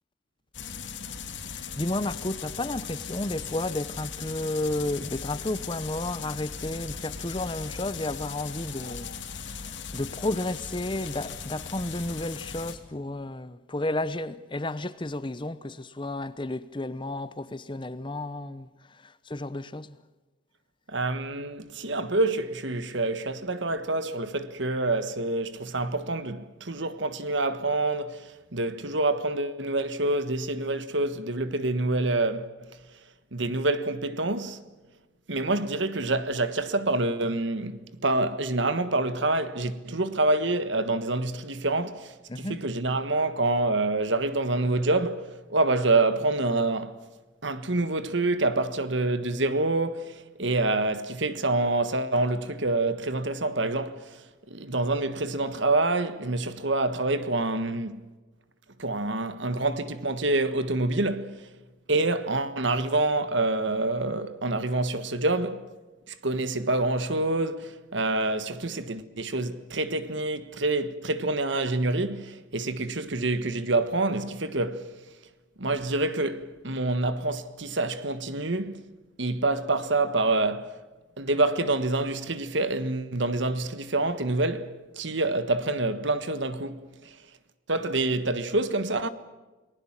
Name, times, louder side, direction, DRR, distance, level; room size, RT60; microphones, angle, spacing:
sound 1, 0.5-12.8, left 6 dB, 65° left, 2.9 m, -38 dB
voice 1, 1.5-9.2 9.4-20.0 42.3-42.6, left 1 dB, 25° left, 0.8 m, -32 dB
voice 2, 20.9-32.5 33.3-34.6 35.3-47.0 47.4-58.0 58.8-61.5 61.9-65.7 66.1-74.9 75.6-78.9 79.2-80.7 81.2-87.2 87.7-89.1, right 2 dB, 65° right, 1.5 m, -27 dB
29.0 x 20.0 x 7.5 m
head